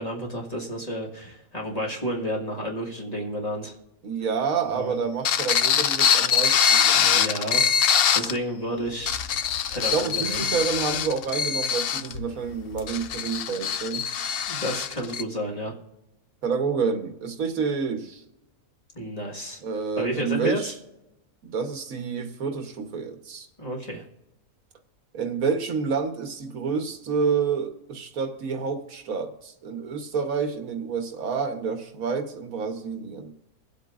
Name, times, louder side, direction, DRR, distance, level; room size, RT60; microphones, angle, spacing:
voice 1, 0.0-3.7 4.7-4.9 6.9-7.6 8.1-9.2 9.7-10.4 14.5-15.7 18.9-19.6 20.0-20.7 23.6-24.0, equal, 25° left, -2 dB, 1.7 m, -31 dB
voice 2, 4.0-7.2 9.9-14.1 16.4-18.2 19.6-20.7 21.4-23.5 25.1-33.3, right 5 dB, 75° right, 6 dB, 1.5 m, -28 dB
sound 1, 5.3-8.4 8.9-15.2, left 7 dB, 65° left, 0.6 m, -23 dB
24.0 x 8.1 x 2.5 m, 0.93 s
omnidirectional pair, 1.5 m